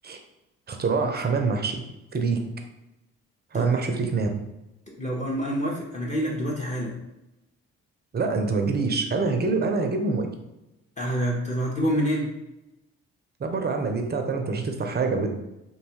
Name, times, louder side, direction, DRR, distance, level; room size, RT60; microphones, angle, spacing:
voice 1, 0.7-1.8 2.1-2.4 3.5-4.3 8.1-10.3 13.4-15.3, right 4 dB, 30° right, 4 dB, 0.5 m, -25 dB
voice 2, 5.0-7.0 11.0-12.3, equal, 20° left, -3 dB, 0.7 m, -27 dB
2.7 x 2.3 x 2.8 m, 0.92 s
hypercardioid pair, 50°, 34 cm